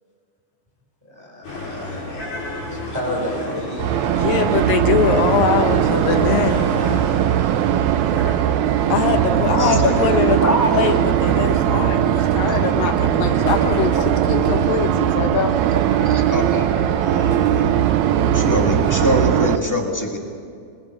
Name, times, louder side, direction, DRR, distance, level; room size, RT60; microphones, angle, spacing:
voice 1, 1.0-2.1 2.7-3.8, equal, 5° right, -2 dB, 4.0 m, -30 dB
sound 1, 1.4-19.4, left 2 dB, 55° left, 7.5 m, -33 dB
sound 2, 3.8-19.6, right 11 dB, 80° right, 1.7 m, -19 dB
voice 2, 4.1-6.7 8.9-15.5, left 7 dB, 75° left, 6 dB, 2.9 m, -22 dB
voice 3, 9.6-10.0 10.4-10.9 12.4-12.6 15.8-16.7 17.0-17.7 18.3-20.2, equal, 10° left, 1 dB, 1.0 m, -24 dB
26.5 x 21.0 x 6.1 m, 2.4 s
omnidirectional pair, 4.2 m